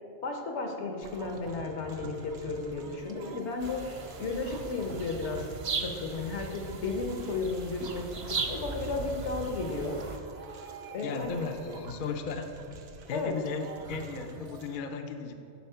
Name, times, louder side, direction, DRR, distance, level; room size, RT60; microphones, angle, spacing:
voice 1, 0.2-3.8 4.2-5.4 5.8-10.0 10.9-11.3 13.1-13.3, left 3 dB, 70° left, 3 dB, 1.2 m, -34 dB
sound 1, 1.0-14.8, right 3 dB, 70° right, 0.9 m, -47 dB
sound 2, 3.6-10.2, right 4 dB, 45° right, 0.4 m, -38 dB
voice 2, 11.0-12.5 13.1-15.3, left 5 dB, 55° left, 5 dB, 0.6 m, -35 dB
11.0 x 4.2 x 5.6 m, 2.6 s
omnidirectional pair, 1.2 m